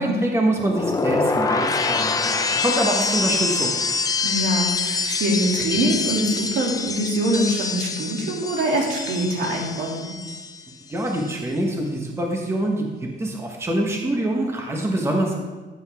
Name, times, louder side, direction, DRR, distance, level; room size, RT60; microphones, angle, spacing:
voice 1, 0.0-3.7 10.9-15.4, right 1 dB, 15° right, 1 dB, 1.2 m, -25 dB
sound 1, 0.6-10.7 11.0-11.4, left 4 dB, 20° left, 0.6 m, -25 dB
voice 2, 4.2-10.1, right 1 dB, 80° right, -1 dB, 2.6 m, -24 dB
14.5 x 8.0 x 3.5 m, 1.3 s
cardioid pair, 160°, 19 cm